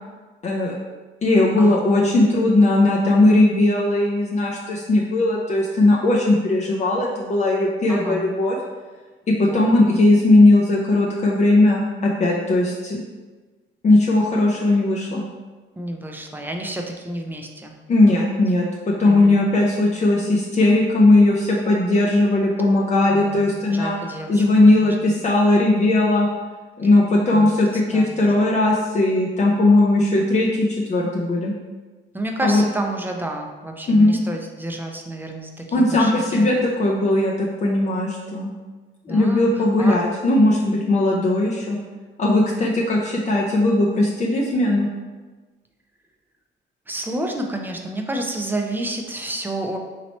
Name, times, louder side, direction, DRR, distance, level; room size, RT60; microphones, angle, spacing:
voice 1, 0.4-0.7 1.2-8.6 9.3-13.0 13.8-15.2 17.9-24.0 24.3-26.3 26.8-31.5 32.4-32.6 33.9-34.2 35.7-38.5 39.1-41.8 42.2-44.9, left 2 dB, 35° left, -3 dB, 0.5 m, -18 dB
voice 2, 7.9-8.3 9.5-10.0 15.8-17.7 18.9-19.4 23.1-25.2 27.3-27.5 27.9-28.2 32.1-36.5 39.1-40.0 46.9-49.8, right 1 dB, 10° right, 2 dB, 0.5 m, -30 dB
3.0 x 2.9 x 4.2 m, 1.3 s
cardioid pair, 90°, 20 cm